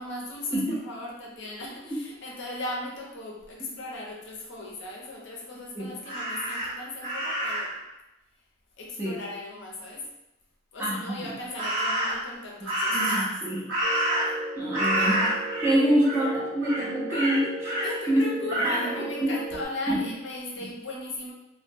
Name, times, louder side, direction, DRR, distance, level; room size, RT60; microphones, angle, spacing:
voice 1, 0.0-7.7 8.8-10.1 10.7-13.2 15.0-15.2 15.6-15.9 17.8-21.3, left 2 dB, 55° left, -2 dB, 0.5 m, -37 dB
voice 2, 5.5-5.9 9.0-9.2 10.8-11.3 12.9-13.7 14.6-15.2 15.6-19.3 19.9-20.0, right 1 dB, 10° right, -5 dB, 0.4 m, -27 dB
Crow, 6.1-7.8 11.6-12.3 12.7-14.5 14.7-15.7 16.0-16.3 16.6-17.9 18.5-18.8, right 1 dB, 55° right, 0.8 m, -28 dB
sound 1, 13.8-19.7, right 2 dB, 80° right, 0.5 m, -36 dB
2.1 x 2.0 x 3.2 m, 0.90 s
head